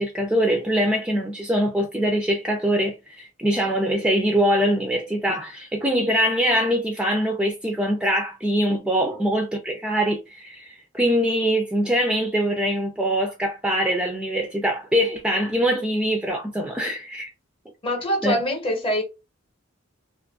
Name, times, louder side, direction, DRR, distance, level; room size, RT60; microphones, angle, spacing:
voice 1, 0.0-17.3 18.2-18.4, equal, 5° right, 0.3 m, -23 dB
voice 2, 17.8-19.0, equal, 25° left, 0.8 m, -24 dB
2.5 x 2.4 x 2.3 m
head